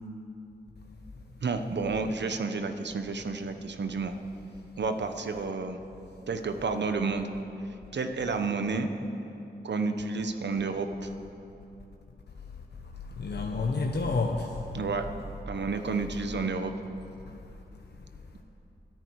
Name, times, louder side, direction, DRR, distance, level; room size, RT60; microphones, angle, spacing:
voice 1, 1.4-4.1 4.8-5.8 6.3-7.3 7.9-8.9 9.6-10.9 14.7-15.1 15.5-16.7, right 4 dB, 75° right, 7 dB, 1.1 m, -30 dB
voice 2, 12.8-14.8 17.3-18.2, left 3 dB, 65° left, 1 dB, 1.2 m, -32 dB
27.0 x 9.3 x 4.8 m, 2.8 s
cardioid pair, 65°, 18 cm